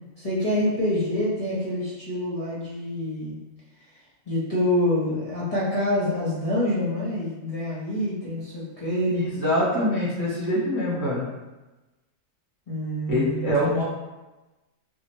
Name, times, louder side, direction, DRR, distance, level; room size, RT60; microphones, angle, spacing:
voice 1, 0.2-3.4 4.3-9.2 12.7-13.8, left 1 dB, 35° left, -9 dB, 0.7 m, -26 dB
voice 2, 9.1-11.3 13.1-13.8, left 1 dB, 25° right, -8 dB, 0.5 m, -24 dB
4.6 x 2.1 x 2.9 m, 1.1 s
omnidirectional pair, 1.5 m